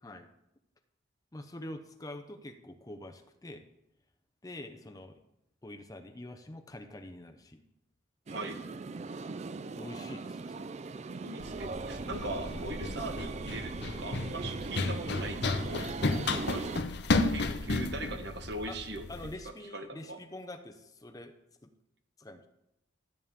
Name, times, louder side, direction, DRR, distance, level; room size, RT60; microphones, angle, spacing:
voice 1, 1.3-3.6 4.4-5.2 5.6-7.6 9.7-10.6 16.0-16.2 18.7-18.8 19.1-21.3 21.6-21.7 22.2-22.5, left 1 dB, 20° left, 6 dB, 0.6 m, -45 dB
sound 1, 8.3-16.8, right 4 dB, 35° right, 0.3 m, -40 dB
voice 2, 8.3-8.6 11.2-15.9 16.3-16.8 17.3-19.1 19.7-20.2, right 2 dB, 55° right, 6 dB, 1.1 m, -40 dB
Run, 11.4-19.3, left 3 dB, 55° left, 0.7 m, -33 dB
13.0 x 8.4 x 3.6 m, 0.85 s
head